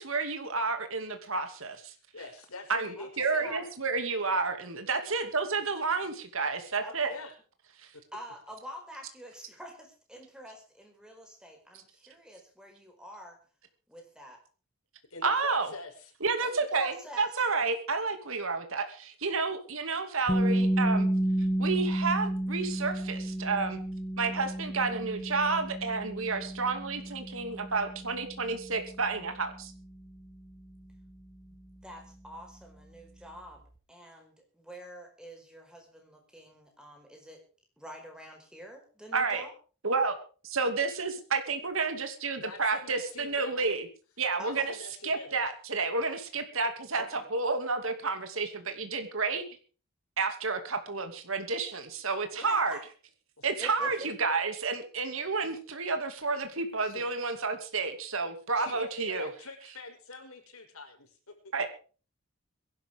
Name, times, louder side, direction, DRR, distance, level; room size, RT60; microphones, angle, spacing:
voice 1, 0.0-1.9 2.7-7.1 15.2-15.7 16.2-21.1 21.6-23.8 24.2-29.7 39.1-39.4 39.8-40.2 40.4-43.9 44.2-44.6 45.0-49.4 50.2-52.8 53.4-59.3 61.5-61.7, right 4 dB, 70° right, 7 dB, 2.6 m, -30 dB
voice 2, 1.9-3.5 5.0-5.1 7.1-7.3 15.1-16.1 42.4-43.7 44.4-45.4 52.4-52.5 53.4-53.5 53.8-53.9 56.8-57.1 58.6-61.2 61.4-61.5, left 3 dB, 85° left, 3 dB, 5.9 m, -44 dB
voice 3, 3.0-3.7 6.8-7.2 8.1-13.4 13.9-14.4 16.4-17.3 31.8-33.6 33.9-37.4 37.8-39.5 44.4-44.7 47.0-47.2 52.4-52.8 53.6-54.1, equal, 5° right, 3 dB, 4.9 m, -46 dB
sound 1, 20.3-32.1, right 1 dB, 15° left, 2.0 m, -32 dB
22.5 x 12.0 x 3.7 m, 0.37 s
head